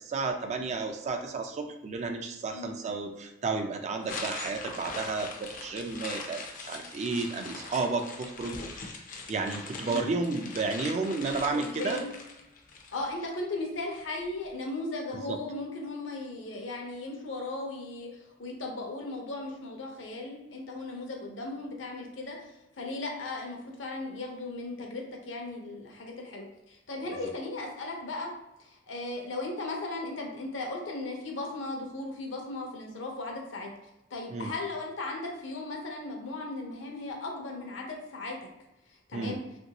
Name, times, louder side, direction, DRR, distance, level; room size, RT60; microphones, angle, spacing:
voice 1, 0.0-8.6 9.3-12.0 15.3-15.4 34.3-34.5 39.1-39.4, right 3 dB, 35° right, 5 dB, 0.3 m, -32 dB
sound 1, 4.0-13.3, left 4 dB, 45° left, 0.5 m, -41 dB
voice 2, 11.5-12.1 12.9-22.5 22.8-28.3 28.6-33.7 34.1-38.3 39.1-39.4, left 2 dB, 70° left, 0 dB, 0.8 m, -37 dB
3.0 x 2.6 x 2.8 m, 0.94 s
head